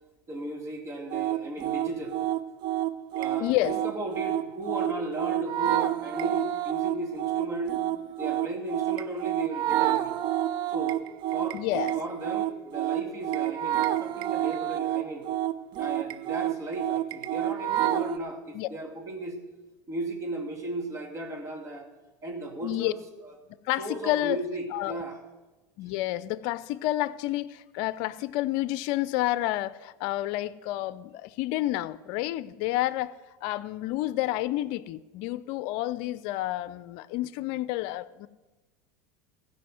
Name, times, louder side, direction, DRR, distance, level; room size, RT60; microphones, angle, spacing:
voice 1, 0.3-2.2 3.1-7.7 8.2-10.2 10.7-11.0 11.3-11.6 11.9-15.3 15.8-19.4 19.9-21.9 22.2-23.3 23.8-25.2, right 1 dB, 30° right, 2.6 m, -36 dB
sound 1, 1.1-18.2, right 13 dB, 50° right, 0.5 m, -29 dB
voice 2, 3.4-3.8 11.5-11.9 18.5-18.7 22.6-22.9 23.6-24.4 24.7-25.0 25.8-38.3, left 15 dB, 60° left, 0.5 m, -29 dB
16.0 x 5.6 x 7.8 m
hypercardioid pair, 100°, 10 cm